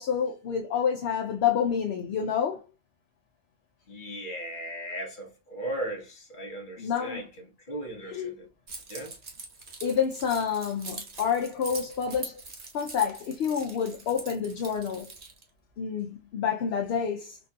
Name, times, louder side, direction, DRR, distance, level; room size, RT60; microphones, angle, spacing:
voice 1, 0.0-2.6 6.8-7.3 8.0-8.3 9.8-12.4 12.7-15.1 15.8-17.4, left 7 dB, 70° left, 0.8 m, -28 dB
voice 2, 3.9-8.5 8.9-9.2, right 1 dB, 50° left, 1.0 m, -37 dB
Keys jangling, 8.7-15.4, right 3 dB, 50° right, 1.0 m, -43 dB
4.0 x 2.5 x 2.2 m
omnidirectional pair, 1.1 m